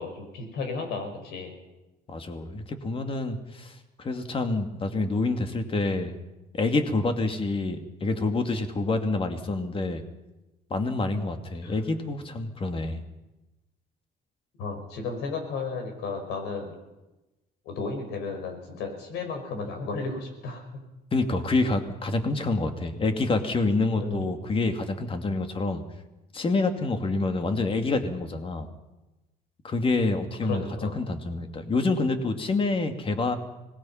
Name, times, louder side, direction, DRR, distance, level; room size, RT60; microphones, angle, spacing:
voice 1, 0.0-1.5 11.6-11.8 14.6-16.7 17.6-20.8 24.0-24.2 30.4-31.0, left 4 dB, 85° left, 4 dB, 5.7 m, -34 dB
voice 2, 2.1-6.2 6.5-10.0 10.7-13.0 21.1-25.8 26.3-28.7 29.6-33.4, left 3 dB, 30° left, 6 dB, 2.5 m, -27 dB
25.5 x 19.5 x 5.8 m, 1.0 s
cardioid pair, 110°, 17 cm